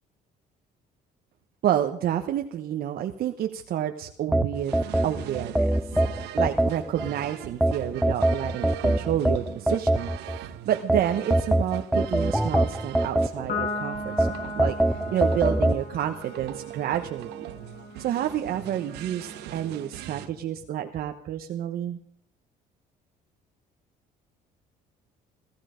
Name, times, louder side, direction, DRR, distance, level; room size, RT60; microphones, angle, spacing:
voice 1, 1.6-5.7 6.3-17.5 18.0-22.0, right 11 dB, 60° right, 5 dB, 1.1 m, -29 dB
sound 1, 4.3-7.1 7.6-10.4 10.9-13.7 14.2-15.8, right 1 dB, ahead, 0.6 m, -23 dB
sound 2, 4.5-20.3, right 14 dB, 85° right, 1.2 m, -41 dB
Piano, 13.5-20.2, left 3 dB, 60° left, 5.3 m, -38 dB
17.5 x 15.0 x 5.1 m, 0.65 s
cardioid pair, 110°, 17 cm